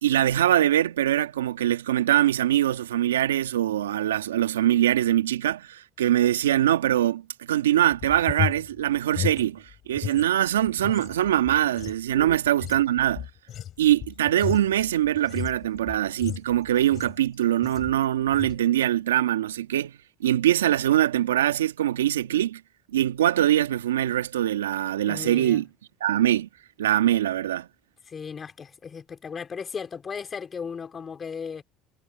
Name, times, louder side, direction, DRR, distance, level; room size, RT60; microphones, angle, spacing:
voice 1, 0.0-7.2 7.5-13.3 13.8-19.9 20.2-22.6 22.9-25.7 26.0-26.5 26.8-27.7, right 12 dB, 90° right, 1.6 m, -23 dB
sound 1, 7.9-10.3 10.6-17.3 17.6-18.0 18.3-18.6, left 11 dB, 50° left, 7.0 m, -34 dB
voice 2, 25.1-25.6 28.1-31.6, left 6 dB, 35° left, 4.1 m, -36 dB
hypercardioid pair, 70°, 0 cm